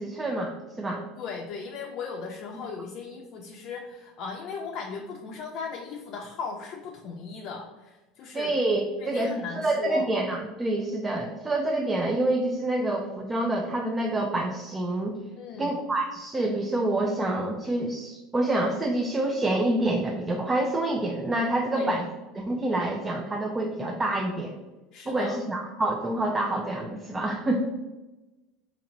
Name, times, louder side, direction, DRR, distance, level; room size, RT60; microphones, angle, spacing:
voice 1, 0.0-1.0 8.3-9.3 9.6-15.1 15.6-22.0 22.3-24.6 25.1-27.6, right 1 dB, 20° right, 0 dB, 0.5 m, -27 dB
voice 2, 1.2-8.5 9.0-10.1 15.4-15.7 21.7-22.0 24.9-25.4, left 5 dB, 55° left, 0 dB, 0.5 m, -37 dB
3.1 x 2.9 x 3.8 m, 1.1 s
hypercardioid pair, 90°, 0 cm